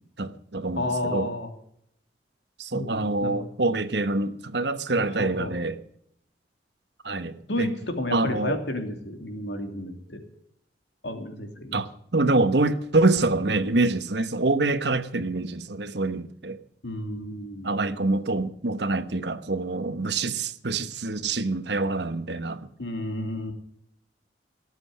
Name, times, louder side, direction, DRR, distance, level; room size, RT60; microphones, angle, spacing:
voice 1, 0.2-1.3 2.6-5.8 7.0-7.7 8.1-8.6 11.7-16.6 17.6-22.7, right 2 dB, 65° right, 1.1 m, -26 dB
voice 2, 0.8-1.5 2.7-3.3 5.0-5.5 7.5-10.2 11.0-11.8 16.8-17.7 22.8-23.5, left 1 dB, 70° left, 2.9 m, -31 dB
18.5 x 7.9 x 7.4 m
head